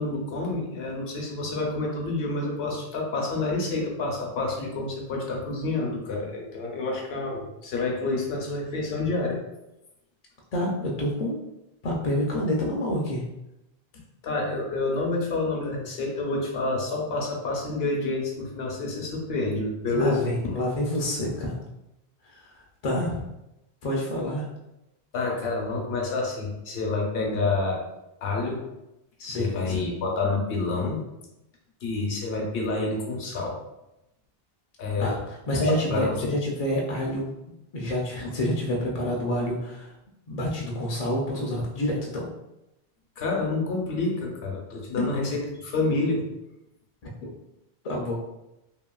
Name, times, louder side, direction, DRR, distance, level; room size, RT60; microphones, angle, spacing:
voice 1, 0.0-9.4 14.2-20.6 25.1-27.8 28.2-28.6 29.2-31.0 31.8-33.6 34.8-35.1 35.6-36.3 43.2-46.3, left 3 dB, 75° left, 0 dB, 0.9 m, -28 dB
voice 2, 10.5-11.4 11.8-13.2 19.9-21.6 22.2-22.5 22.8-23.2 23.8-24.5 29.3-29.9 35.0-37.3 37.7-39.9 40.3-42.3 47.0-47.3 47.8-48.2, left 1 dB, 55° left, -2 dB, 0.4 m, -28 dB
2.8 x 2.7 x 2.2 m, 0.92 s
omnidirectional pair, 1.0 m